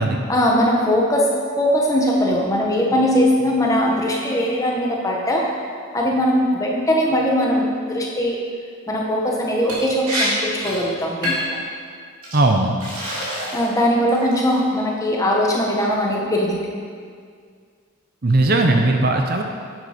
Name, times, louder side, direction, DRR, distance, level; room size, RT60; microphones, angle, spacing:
voice 1, 0.3-5.6 5.9-8.4 8.9-11.6 13.5-16.7, equal, 15° left, -2 dB, 1.3 m, -20 dB
Liquid, 9.7-9.8 10.1-10.3 10.6-10.8 11.2-11.6 12.2-12.4 12.8-13.7 14.1-14.5, equal, 80° right, 3.2 m, -26 dB
voice 2, 12.3-12.8 18.2-19.4, right 2 dB, 45° right, 3 dB, 0.7 m, -17 dB
10.0 x 8.1 x 5.1 m, 2.1 s
head